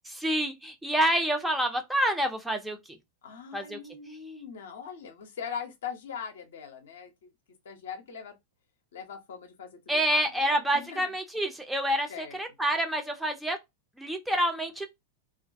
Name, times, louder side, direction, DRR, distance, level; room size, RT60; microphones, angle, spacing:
voice 1, 0.1-2.8 3.5-3.8 9.9-13.6 14.0-14.9, right 1 dB, 5° right, 0.4 m, -28 dB
voice 2, 3.2-7.1 7.6-8.3 8.9-11.0 12.1-12.4, left 7 dB, 60° left, 0.6 m, -41 dB
2.4 x 2.1 x 2.4 m
figure-of-eight pair, 90°, 0 cm